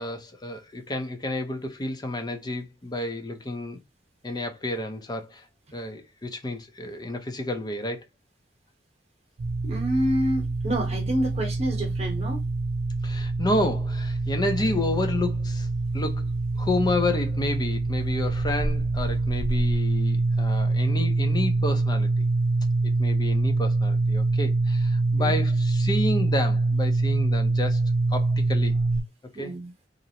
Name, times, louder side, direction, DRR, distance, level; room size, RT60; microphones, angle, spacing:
voice 1, 0.0-3.8 4.2-5.5 5.7-8.0 13.0-15.7 15.9-16.3 16.6-22.3 22.8-27.8 28.1-28.8 29.4-29.5, left 2 dB, 25° left, 0.5 m, -30 dB
sound 1, 9.4-29.0, right 2 dB, 55° right, 0.5 m, -25 dB
voice 2, 9.6-12.4 25.2-25.4 29.3-29.7, right 1 dB, 35° right, 0.9 m, -28 dB
2.5 x 2.0 x 2.7 m
head